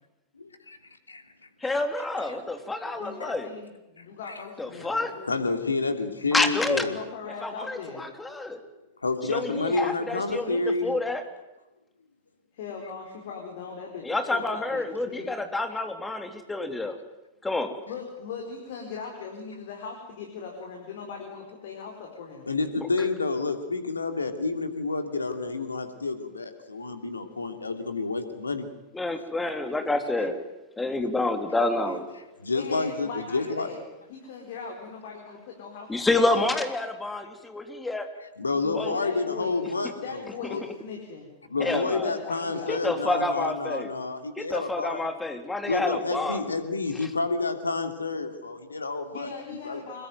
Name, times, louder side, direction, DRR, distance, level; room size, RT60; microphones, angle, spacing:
voice 1, 0.3-0.8 1.1-1.2 2.3-2.4 2.8-3.0 4.0-4.3 5.3-7.0 9.0-10.9 22.5-28.7 32.4-33.7 38.2-40.2 40.5-40.6 41.5-45.1 45.7-49.3 49.6-49.8, left 3 dB, 75° left, 7 dB, 2.9 m, -29 dB
voice 2, 1.6-3.5 4.6-5.1 6.3-6.9 7.4-8.6 9.3-11.2 14.0-17.0 17.4-17.7 22.8-22.9 28.9-30.4 30.8-32.1 35.9-38.1 38.8-39.0 41.6-42.1 42.7-43.9 44.4-46.4 47.0-47.1, left 2 dB, 10° left, 7 dB, 3.4 m, -28 dB
voice 3, 3.0-5.3 6.9-8.1 12.5-15.3 17.9-22.5 32.5-33.8 34.1-35.9 38.6-39.5 40.0-41.3 41.6-42.8 49.1-50.1, left 5 dB, 55° left, 1 dB, 4.6 m, -39 dB
26.0 x 22.0 x 9.3 m, 0.99 s
figure-of-eight pair, 90°, 0 cm